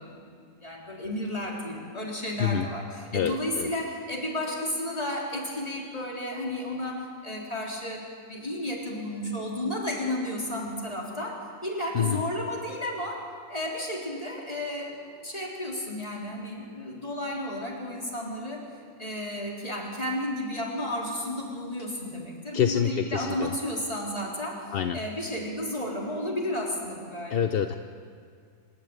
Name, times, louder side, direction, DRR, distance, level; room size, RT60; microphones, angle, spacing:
voice 1, 0.0-18.6 19.0-24.6 24.9-27.6, left 1 dB, 25° left, -2 dB, 3.8 m, -33 dB
voice 2, 3.1-3.7 11.9-12.3 22.5-23.5 24.7-25.0 27.3-27.7, left 8 dB, 55° left, 8 dB, 0.7 m, -26 dB
26.0 x 12.5 x 8.9 m, 2.2 s
omnidirectional pair, 1.5 m